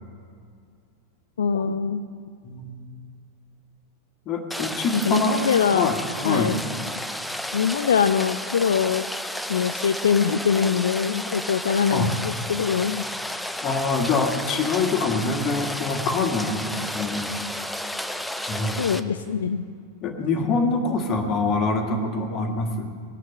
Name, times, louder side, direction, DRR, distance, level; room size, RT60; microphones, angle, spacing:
voice 1, 1.4-2.1 4.9-5.9 6.2-6.6 7.5-9.1 9.5-13.1 18.8-19.7, left 7 dB, 65° left, 10 dB, 0.4 m, -23 dB
voice 2, 2.4-2.8 4.2-5.4 5.7-5.9 6.2-6.5 11.9-12.1 13.6-16.7 16.9-17.4 18.5-18.9 20.0-22.9, left 3 dB, 35° left, 4 dB, 1.6 m, -25 dB
Rain, 4.5-19.0, left 1 dB, 5° left, 0.6 m, -32 dB
19.5 x 6.7 x 5.3 m, 2.2 s
figure-of-eight pair, 90°, 0 cm